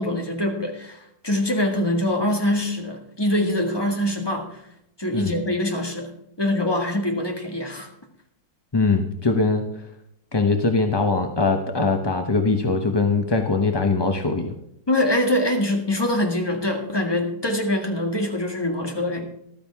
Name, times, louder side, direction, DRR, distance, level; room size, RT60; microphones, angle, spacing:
voice 1, 0.0-4.6 5.0-6.1 6.4-7.9 14.9-19.3, left 1 dB, 15° left, 2 dB, 1.5 m, -24 dB
voice 2, 8.7-9.6 10.3-14.5, left 3 dB, 35° left, 5 dB, 0.3 m, -21 dB
14.0 x 12.5 x 3.6 m, 0.77 s
omnidirectional pair, 2.0 m